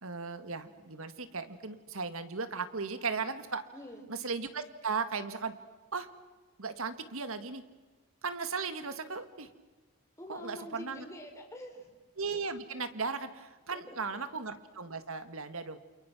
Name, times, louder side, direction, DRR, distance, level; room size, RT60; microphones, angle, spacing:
voice 1, 0.0-3.6 4.1-5.5 5.9-6.1 6.6-7.6 8.2-9.5 10.3-11.1 12.2-15.8, right 4 dB, 70° right, 10 dB, 1.8 m, -36 dB
voice 2, 3.7-4.0 10.2-11.9 13.7-14.2, left 1 dB, 15° left, 2 dB, 4.6 m, -46 dB
29.5 x 29.0 x 6.2 m, 1.2 s
head